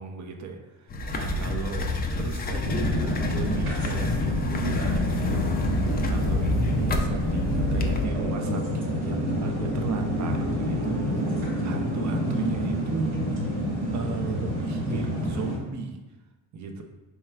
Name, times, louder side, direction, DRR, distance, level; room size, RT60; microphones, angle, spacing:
voice 1, 0.0-1.9 2.2-5.6 6.1-13.3 13.9-16.0 16.5-16.8, right 4 dB, 40° right, 3 dB, 0.6 m, -35 dB
sound 1, 0.9-8.1, left 1 dB, 25° left, 0.3 m, -28 dB
sound 2, 2.6-15.6, equal, 85° right, 1.4 m, -28 dB
4.4 x 3.3 x 2.3 m, 1.1 s
cardioid pair, 85°, 43 cm